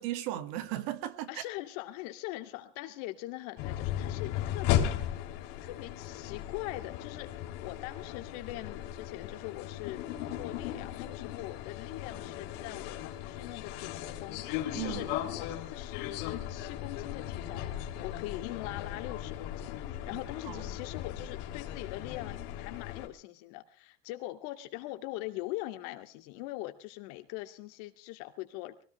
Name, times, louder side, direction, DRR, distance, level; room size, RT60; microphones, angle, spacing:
voice 1, 0.0-1.5 14.7-15.2 20.1-20.6, right 14 dB, 80° right, 2.1 m, -37 dB
voice 2, 1.3-5.1 5.6-10.1 10.3-15.1 15.4-28.8, left 17 dB, 80° left, 2.5 m, -42 dB
sound 1, 3.6-23.1, left 11 dB, 65° left, 3.4 m, -37 dB
23.5 x 17.5 x 3.3 m
cardioid pair, 175°, 20 cm